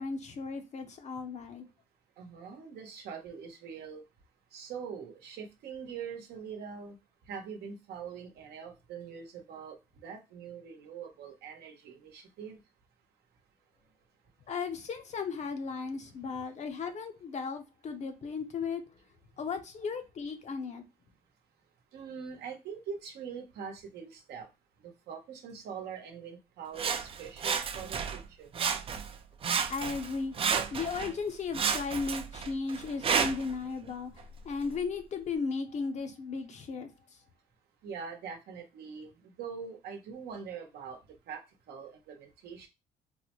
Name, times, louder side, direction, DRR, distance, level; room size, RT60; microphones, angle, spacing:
voice 1, 0.0-1.6 14.5-18.8 19.4-20.8 29.7-30.3 30.7-36.9, left 5 dB, 45° left, 0.7 m, -35 dB
voice 2, 2.2-4.0 4.5-6.9 7.3-9.8 10.0-12.6 16.3-16.4 21.9-24.5 24.8-28.5 37.8-41.0 41.3-42.7, right 6 dB, 75° right, 0.9 m, -43 dB
Sawing, 26.8-28.2 28.5-29.2 29.4-31.1 31.5-33.5 34.2-34.3, right 6 dB, 35° right, 0.4 m, -31 dB
3.9 x 2.1 x 3.0 m
cardioid pair, 110°, 17 cm